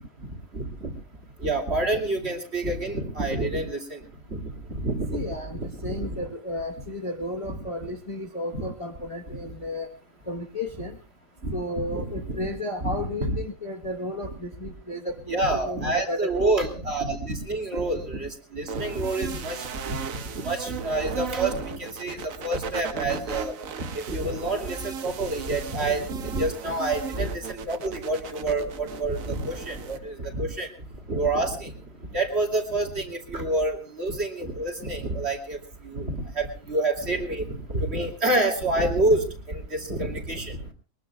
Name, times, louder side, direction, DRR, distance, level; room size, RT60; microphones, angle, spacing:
voice 1, 0.5-0.9 1.4-4.0 4.3-4.4 4.7-5.2 5.5-6.2 8.5-8.7 11.4-11.5 11.9-12.5 12.8-12.9 13.2-13.4 15.3-20.0 20.3-30.7 31.1-31.7 32.1-35.6 35.8-40.6, right 2 dB, 45° right, 3 dB, 3.0 m, -28 dB
voice 2, 5.1-9.9 10.3-11.0 11.5-16.3 17.7-17.8 22.0-22.1, left 1 dB, 25° left, 2 dB, 1.1 m, -33 dB
sound 1, 18.7-30.0, right 6 dB, 65° right, 1.4 m, -37 dB
22.5 x 21.0 x 2.3 m, 0.33 s
omnidirectional pair, 1.6 m